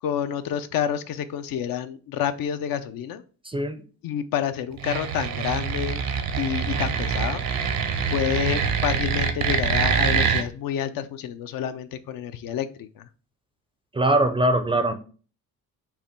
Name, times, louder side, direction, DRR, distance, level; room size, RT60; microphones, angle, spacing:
voice 1, 0.0-3.2 4.0-6.0 6.4-7.4 8.1-13.1, left 9 dB, 70° left, 11 dB, 0.5 m, -28 dB
voice 2, 3.5-3.8 13.9-14.9, right 1 dB, 15° right, 8 dB, 0.4 m, -21 dB
sound 1, 4.8-10.4, right 6 dB, 75° right, 0.8 m, -25 dB
5.6 x 2.2 x 4.3 m, 0.38 s
cardioid pair, 115°, 35 cm